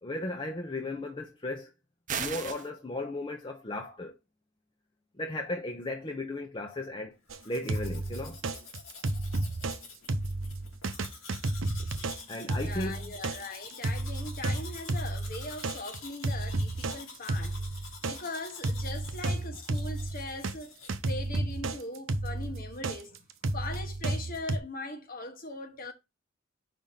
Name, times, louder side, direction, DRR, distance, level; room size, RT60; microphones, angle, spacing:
voice 1, 0.0-1.7 2.2-4.1 5.2-7.1 7.4-8.4 12.3-13.2, left 2 dB, 25° left, 0.7 m, -35 dB
sound 1, 2.1-2.7, right 7 dB, 40° right, 0.7 m, -34 dB
Domestic sounds home sounds, 7.3-20.9, left 4 dB, 80° left, 2.3 m, -48 dB
sound 2, 7.3-9.8 10.1-20.5 20.9-24.6, right 2 dB, 75° right, 0.7 m, -32 dB
voice 2, 12.5-17.6 18.0-20.7 21.1-23.2 23.5-25.9, left 2 dB, 45° left, 1.2 m, -40 dB
5.1 x 3.7 x 5.7 m
head